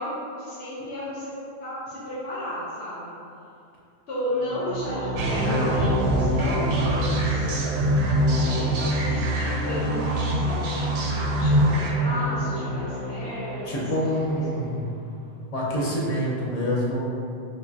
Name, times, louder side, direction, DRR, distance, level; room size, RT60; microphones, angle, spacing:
voice 1, 0.0-1.3 1.6-3.1 4.1-7.5 8.4-13.8 14.4-14.5, left 1 dB, 80° left, -10 dB, 1.0 m, -33 dB
sound 1, 4.4-14.5, equal, 50° right, 0.6 m, -30 dB
sound 2, 5.2-11.9, right 1 dB, 85° right, 0.8 m, -24 dB
voice 2, 13.7-14.9 15.5-17.0, equal, 45° left, -5 dB, 0.6 m, -26 dB
4.9 x 2.2 x 2.7 m, 2.6 s
omnidirectional pair, 1.1 m